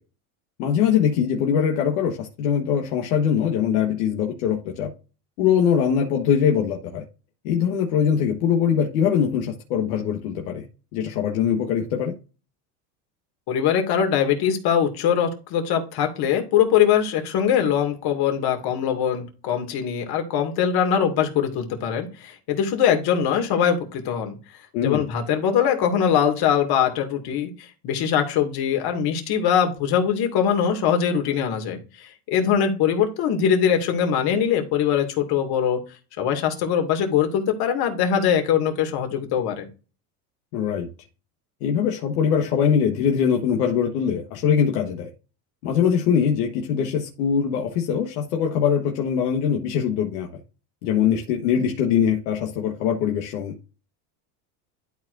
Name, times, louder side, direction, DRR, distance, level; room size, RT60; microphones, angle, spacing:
voice 1, 0.6-4.9 5.4-7.0 7.4-10.7 10.9-12.1 24.7-25.1 40.5-40.9 41.6-45.1 45.6-50.3 50.8-53.6, left 8 dB, 80° left, 1.4 m, -22 dB
voice 2, 13.5-24.4 24.8-35.8 36.2-39.7, left 8 dB, 55° left, 2.3 m, -22 dB
12.0 x 4.7 x 2.6 m
supercardioid pair, 110°, 46 cm